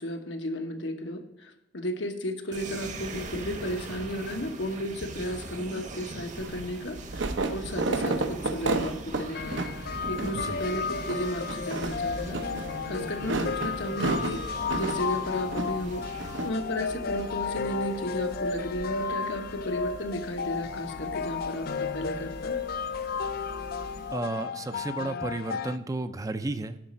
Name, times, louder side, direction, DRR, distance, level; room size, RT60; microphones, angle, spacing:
voice 1, 0.0-9.6 10.1-12.4 12.9-14.4 14.7-16.0 16.4-22.6, left 1 dB, 80° left, 5 dB, 1.1 m, -34 dB
sound 1, 2.5-16.5, right 2 dB, 40° right, 0.9 m, -41 dB
sound 2, 6.3-24.1, right 3 dB, 85° right, 0.8 m, -35 dB
sound 3, 9.3-25.8, left 5 dB, 55° left, 0.4 m, -33 dB
voice 2, 24.1-26.8, right 2 dB, 20° right, 11 dB, 0.4 m, -32 dB
11.0 x 4.1 x 7.4 m, 0.89 s
head